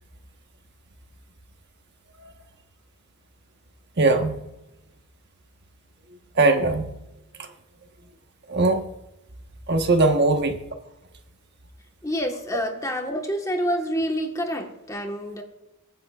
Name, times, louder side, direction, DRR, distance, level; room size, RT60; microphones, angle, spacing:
voice 1, 4.0-4.4 6.4-6.9 8.5-8.8 9.7-10.6, right 2 dB, 50° right, 5 dB, 1.3 m, -20 dB
voice 2, 12.0-15.4, equal, 15° left, 3 dB, 1.4 m, -27 dB
23.5 x 9.7 x 2.5 m, 0.92 s
head